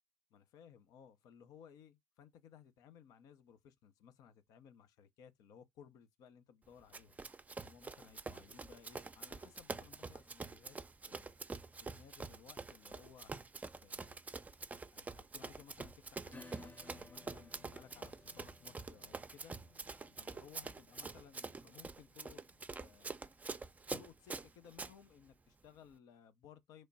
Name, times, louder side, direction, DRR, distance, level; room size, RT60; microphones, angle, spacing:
voice 1, 0.3-7.2 7.6-10.8 11.1-11.4 11.8-13.4 13.8-14.2 14.8-19.5 20.2-22.4 22.8-23.2 23.9-26.9, left 8 dB, 70° left, 0.6 m, -60 dB
Run, 6.9-24.9, right 4 dB, 25° right, 0.5 m, -46 dB
Acoustic guitar / Strum, 16.3-23.5, left 3 dB, 25° left, 0.8 m, -60 dB
3.2 x 2.2 x 3.9 m
hypercardioid pair, 45°, 6 cm